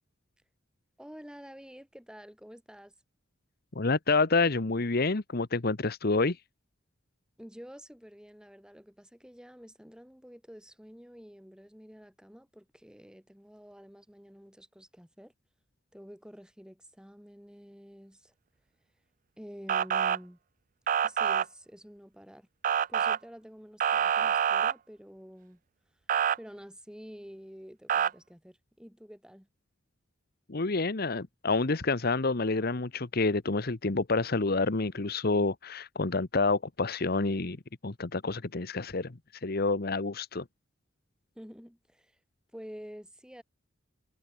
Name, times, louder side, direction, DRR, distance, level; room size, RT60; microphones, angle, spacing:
voice 1, 1.0-2.9 7.4-15.3 15.9-18.3 19.4-20.4 21.0-22.5 22.9-25.6 26.3-29.5 41.4-42.2 42.5-43.4, equal, 5° right, 5.6 m, -49 dB
voice 2, 3.7-6.4 30.5-37.6 37.8-39.1 39.4-40.4, left 3 dB, 50° left, 1.1 m, -28 dB
Motor vehicle (road) / Siren, 19.7-20.2 20.9-21.4 22.6-23.2 23.8-24.7 26.1-26.4 27.9-28.1, right 8 dB, 45° right, 0.5 m, -26 dB
head